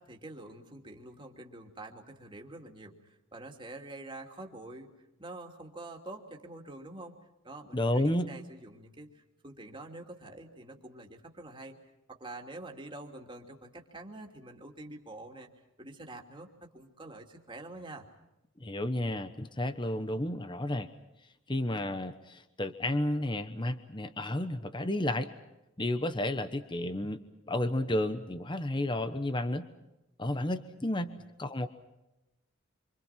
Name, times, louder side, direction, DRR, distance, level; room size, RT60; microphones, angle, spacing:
voice 1, 0.0-4.9 5.2-7.2 7.4-11.8 12.1-15.5 15.8-18.1 31.1-31.2, right 2 dB, 20° right, 2 dB, 2.8 m, -46 dB
voice 2, 7.7-8.3 18.6-20.9 21.5-25.3 25.8-27.2 27.5-29.7 30.2-31.7, left 1 dB, 20° left, 10 dB, 1.1 m, -32 dB
27.5 x 26.0 x 5.9 m, 0.96 s
head